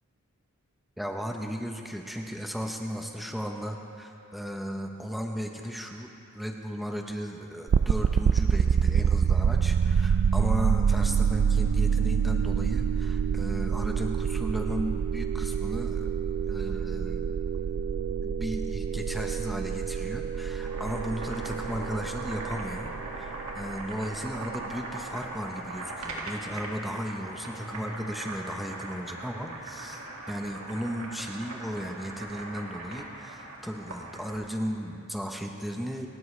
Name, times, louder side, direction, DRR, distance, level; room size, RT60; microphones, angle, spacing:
voice 1, 1.0-6.1 6.3-16.1 16.5-17.3 18.2-30.0 30.3-36.1, equal, ahead, 2 dB, 0.8 m, -35 dB
sound 1, 7.7-24.6, right 6 dB, 55° right, 0.3 m, -27 dB
Boiling, 20.5-34.5, right 2 dB, 70° right, 2.2 m, -40 dB
28.0 x 13.0 x 3.3 m, 2.8 s
head